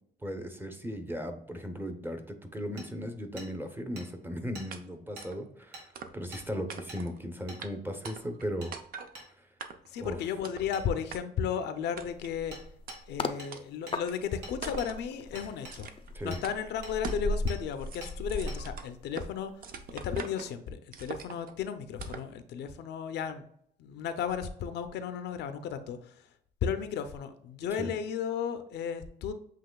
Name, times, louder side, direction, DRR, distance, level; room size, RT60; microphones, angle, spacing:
voice 1, 0.2-8.7 9.4-9.5 10.0-10.2 16.1-16.4 27.8-27.9, equal, 10° right, 7 dB, 0.8 m, -37 dB
Hammer, 2.8-2.9 3.4-3.5 4.0-4.1 4.5-4.7 5.2-5.3 5.7-5.9 6.3-6.4 6.9-7.0 7.5-7.6 8.0-8.2 8.6-8.7 9.1-9.3 10.7-10.8 12.5-12.6 12.9-13.0 13.4-13.5 13.9-14.0 14.4-14.9 15.4-15.8 16.3-16.4 16.8-17.2 17.5-17.6 18.0-18.1 18.5-18.6, right 2 dB, 75° right, 1.7 m, -45 dB
sound 1, 4.7-4.8 5.2-5.4 5.9-6.4 6.7-7.2 7.6-7.7 8.0-8.5 8.7-9.1 9.6-10.0 10.4-10.7 11.1-11.2 12.0-12.3 12.9-13.0 13.5-13.6 14.1-14.2 14.6-15.0 15.7-16.1 16.4-16.6 17.0-17.3 17.6-19.3 19.6-20.5 20.9-21.5 22.0-22.3, right 6 dB, 55° right, 0.6 m, -43 dB
voice 2, 9.9-12.6 13.1-15.9 16.2-19.5 19.9-23.5 23.8-26.0 26.6-29.3, left 7 dB, 80° left, 10 dB, 0.6 m, -34 dB
sound 2, 12.1-13.4 13.9-19.5 19.8-20.1, left 2 dB, 30° left, 0.5 m, -37 dB
7.6 x 3.0 x 2.2 m, 0.68 s
cardioid pair, 110°, 17 cm